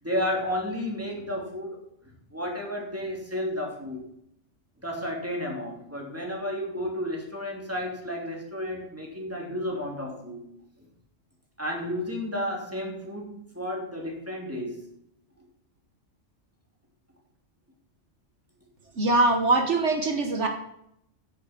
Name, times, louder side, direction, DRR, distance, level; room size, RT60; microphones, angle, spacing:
voice 1, 0.0-1.9 2.3-4.1 4.8-10.4 11.6-14.8, left 1 dB, 10° right, -1 dB, 2.9 m, -32 dB
voice 2, 18.9-20.5, right 2 dB, 65° right, 5 dB, 1.6 m, -22 dB
15.5 x 6.8 x 5.9 m, 0.76 s
omnidirectional pair, 1.3 m